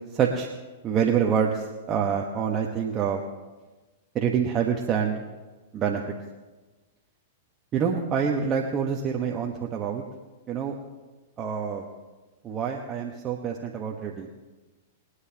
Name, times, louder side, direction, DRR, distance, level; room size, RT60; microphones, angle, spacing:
voice 1, 0.1-0.5 0.8-3.2 4.1-5.2 5.7-6.0 7.7-10.0 10.5-10.7 11.4-11.8 12.4-14.3, right 7 dB, 30° right, 0 dB, 1.3 m, -26 dB
23.0 x 9.6 x 2.9 m, 1.2 s
hypercardioid pair, 105°, 0 cm